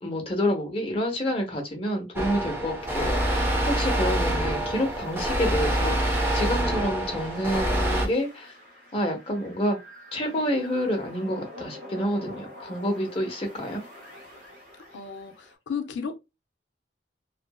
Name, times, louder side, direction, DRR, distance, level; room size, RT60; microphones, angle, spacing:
voice 1, 0.0-3.4 3.7-8.5 8.9-9.8 10.1-13.8, equal, 30° left, 0.7 m, -28 dB
sound 1, 2.2-8.1, right 1 dB, 10° right, 0.4 m, -26 dB
sound 2, 2.8-15.5, left 1 dB, 70° right, 1.1 m, -46 dB
voice 2, 14.9-16.2, left 6 dB, 75° left, 0.4 m, -34 dB
2.7 x 2.5 x 2.2 m
head